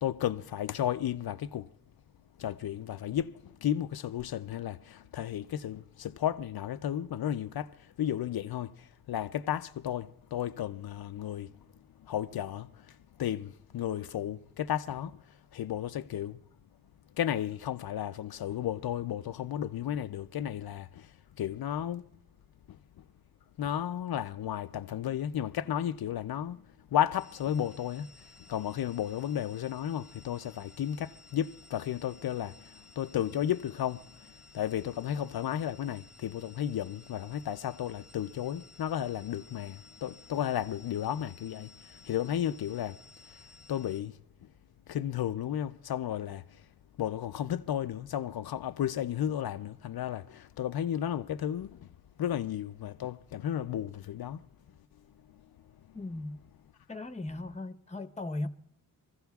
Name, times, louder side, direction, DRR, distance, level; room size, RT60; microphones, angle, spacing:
voice 1, 0.0-1.7 2.4-11.5 12.0-16.4 17.2-22.0 22.7-22.8 23.6-26.7 26.9-43.0 43.2-43.4 43.7-44.2 44.9-46.7 47.0-51.9 52.2-54.5 55.3-55.4, left 10 dB, 80° left, 0.5 m, -33 dB
sound 1, 27.2-44.0, left 2 dB, 5° right, 1.5 m, -56 dB
voice 2, 55.9-56.4 56.9-58.5, left 2 dB, 20° left, 0.9 m, -37 dB
26.5 x 14.5 x 2.3 m
cardioid pair, 65°, 36 cm